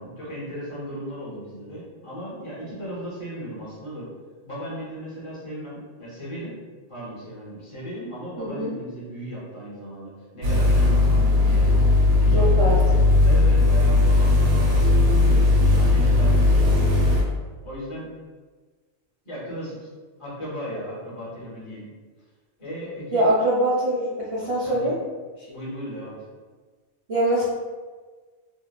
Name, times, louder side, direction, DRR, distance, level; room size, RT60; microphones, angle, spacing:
voice 1, 0.0-4.1 4.4-6.6 6.9-11.7 12.1-12.8 13.2-15.3 15.6-16.8 17.6-18.1 19.2-19.9 20.2-21.9 22.6-23.2 24.6-25.0 25.5-26.2, right 1 dB, 30° left, -7 dB, 0.8 m, -36 dB
voice 2, 8.4-8.7 12.3-12.8 23.1-24.9 27.1-27.4, right 1 dB, 65° right, -8 dB, 0.3 m, -23 dB
sound 1, 10.4-17.2, left 2 dB, 90° right, 0.9 m, -18 dB
2.7 x 2.1 x 2.2 m, 1.4 s
omnidirectional pair, 1.2 m